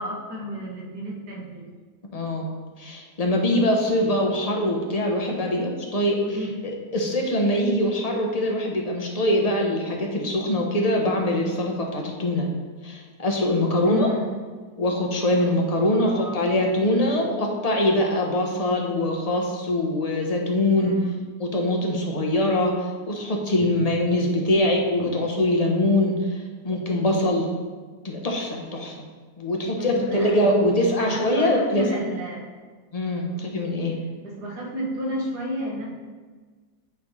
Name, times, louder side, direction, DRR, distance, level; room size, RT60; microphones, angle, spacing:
voice 1, 0.0-1.7 5.5-5.8 6.2-6.6 13.8-14.4 15.9-16.4 16.8-17.2 20.8-21.2 24.6-24.8 29.8-30.5 31.0-32.5 33.3-33.5 34.2-35.9, right 1 dB, 80° right, -1 dB, 2.0 m, -32 dB
voice 2, 2.1-2.5 2.8-6.2 6.9-12.5 12.8-14.1 14.8-20.9 21.4-27.5 28.0-29.0 29.4-31.9 32.9-33.9, left 1 dB, 30° left, 0 dB, 0.8 m, -23 dB
8.9 x 3.4 x 5.4 m, 1.4 s
omnidirectional pair, 1.7 m